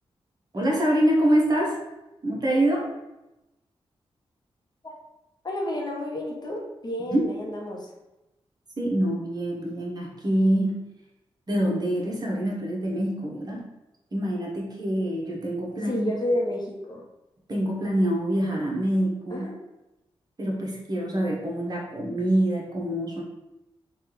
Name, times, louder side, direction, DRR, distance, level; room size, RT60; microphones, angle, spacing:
voice 1, 0.5-1.8 2.2-2.9 7.1-7.3 8.8-10.9 11.5-13.7 14.1-16.1 17.5-19.5 20.4-23.2, right 1 dB, 40° right, -2 dB, 0.9 m, -25 dB
voice 2, 5.4-7.9 15.9-17.0 19.3-19.5, left 1 dB, 40° left, -1 dB, 0.7 m, -30 dB
3.3 x 2.3 x 3.0 m, 0.96 s
cardioid pair, 65°, 11 cm